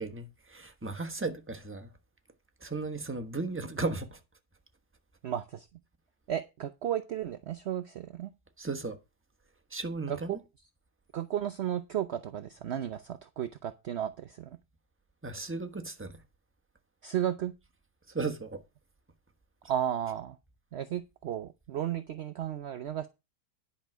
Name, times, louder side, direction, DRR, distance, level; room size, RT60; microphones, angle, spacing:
voice 1, 0.0-1.9 2.6-4.2 8.6-9.0 9.7-10.4 15.2-16.2 18.1-18.6, right 3 dB, 10° right, 1.1 m, -35 dB
voice 2, 5.2-5.7 6.3-8.3 10.1-10.4 11.1-14.6 17.0-17.5 19.7-20.4 20.7-23.1, right 10 dB, 65° right, 0.6 m, -34 dB
10.5 x 5.6 x 6.0 m
omnidirectional pair, 1.8 m